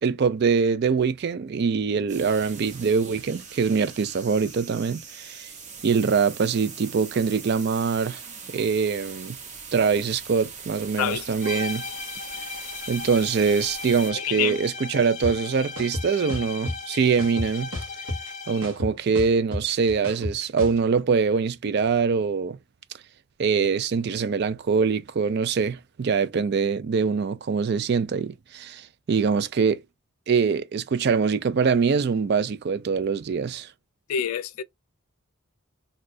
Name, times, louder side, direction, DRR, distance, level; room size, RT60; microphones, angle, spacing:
voice 1, 0.0-5.5 5.8-8.2 8.5-9.4 9.7-11.8 12.9-17.7 18.5-22.6 23.4-29.8 30.3-33.7, right 5 dB, 50° right, 0.3 m, -23 dB
sound 1, 2.1-14.1, right 6 dB, 35° right, 0.7 m, -41 dB
sound 2, 11.4-18.8, left 4 dB, 35° left, 0.5 m, -36 dB
voice 2, 14.2-14.6 34.1-34.6, left 9 dB, 90° left, 0.4 m, -27 dB
sound 3, 15.2-15.3 15.8-16.7 17.2-18.3 18.6-20.8, left 1 dB, 85° right, 1.2 m, -31 dB
2.7 x 2.3 x 3.9 m
head